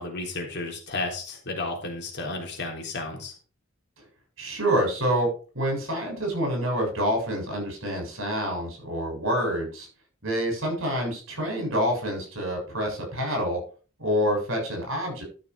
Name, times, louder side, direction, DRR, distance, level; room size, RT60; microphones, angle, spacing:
voice 1, 0.0-3.4, left 2 dB, 55° left, 1 dB, 3.6 m, -33 dB
voice 2, 4.4-5.3 5.5-9.9 10.2-13.6 14.0-15.2, equal, 70° right, 2 dB, 7.4 m, -27 dB
12.5 x 6.8 x 4.8 m, 0.37 s
head